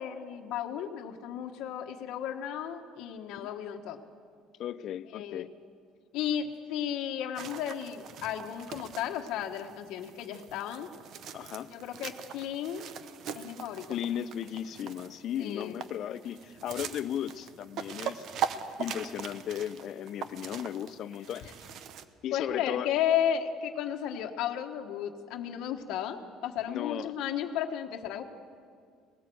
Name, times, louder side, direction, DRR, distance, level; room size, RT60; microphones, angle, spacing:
voice 1, 0.0-4.0 5.1-5.5 6.1-10.9 11.7-12.8 13.3-14.0 15.4-15.8 21.4-21.5 22.3-28.2, left 9 dB, 65° left, 3 dB, 1.3 m, -34 dB
voice 2, 4.6-5.5 11.3-11.7 13.9-18.2 18.8-21.4 22.2-22.9 26.7-27.2, left 10 dB, 45° left, 15 dB, 0.5 m, -36 dB
sound 1, 7.3-22.0, right 8 dB, 50° right, 0.9 m, -41 dB
19.5 x 17.0 x 7.8 m, 2.1 s
cardioid pair, 160°, 0 cm